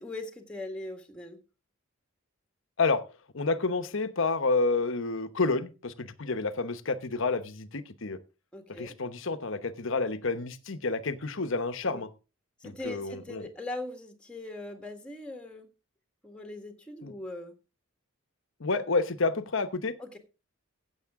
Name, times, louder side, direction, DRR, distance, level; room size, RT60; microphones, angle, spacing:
voice 1, 0.0-1.4 8.5-9.0 11.8-12.1 12.6-15.7 16.2-17.6 20.0-20.2, left 2 dB, 5° left, 1.7 m, -40 dB
voice 2, 3.3-8.2 8.8-12.1 12.6-13.4 17.0-17.1 18.6-20.2, left 3 dB, 65° left, 1.0 m, -29 dB
15.0 x 8.0 x 3.6 m
head